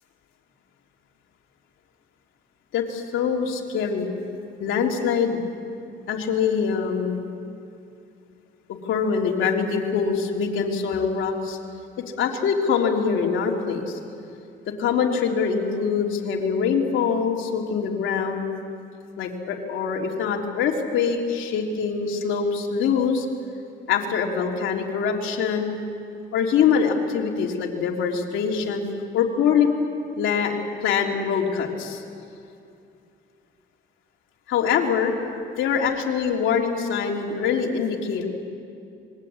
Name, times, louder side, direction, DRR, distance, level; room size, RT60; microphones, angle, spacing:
voice 1, 2.7-4.1 4.6-5.4 6.1-7.2 8.7-11.6 12.2-14.0 14.6-18.5 19.2-23.3 23.9-25.8 26.3-28.9 29.1-29.7 30.2-32.0 34.5-35.1 35.6-38.3, left 6 dB, 85° left, 1 dB, 3.3 m, -24 dB
26.5 x 22.5 x 8.6 m, 2.5 s
cardioid pair, 90°, 20 cm